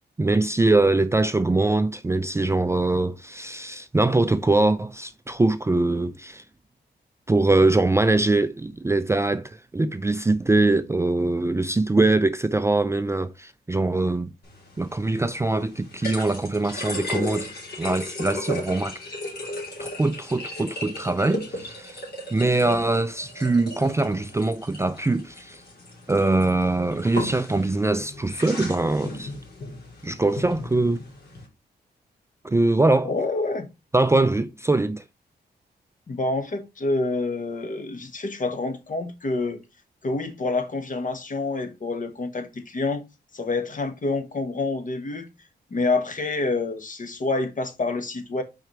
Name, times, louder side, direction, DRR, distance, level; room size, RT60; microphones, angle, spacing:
voice 1, 0.2-6.4 7.3-14.3 14.8-17.5 17.8-19.0 19.8-22.0 22.3-25.6 26.1-29.3 30.0-31.0 32.4-33.1 33.9-35.0, right 2 dB, 15° right, 0.4 m, -22 dB
sound 1, 14.4-31.5, left 1 dB, 65° left, 3.2 m, -36 dB
voice 2, 33.0-33.7 36.1-39.6 40.0-43.0 43.3-45.3 45.7-48.4, left 3 dB, 50° left, 1.4 m, -27 dB
4.9 x 4.6 x 4.5 m
cardioid pair, 85°, 18 cm